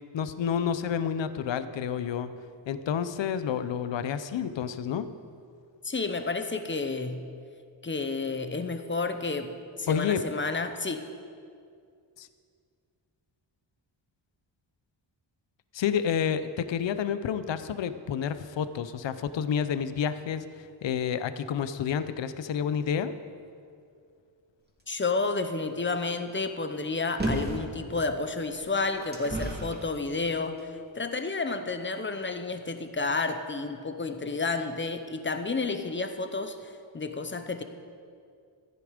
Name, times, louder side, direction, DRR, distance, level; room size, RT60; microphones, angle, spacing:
voice 1, 0.1-2.3 2.7-5.1 9.9-10.2 12.2-12.3 15.7-23.2, left 8 dB, 70° left, 12 dB, 0.7 m, -29 dB
voice 2, 5.8-7.3 7.8-11.1 24.9-30.7 30.9-37.6, left 3 dB, 25° left, 8 dB, 0.9 m, -31 dB
sound 1, 27.2-27.7 28.5-29.8 30.6-30.7, right 1 dB, 20° right, 2.4 m, -32 dB
14.5 x 9.6 x 5.1 m, 2.3 s
wide cardioid pair, 95°, 46 cm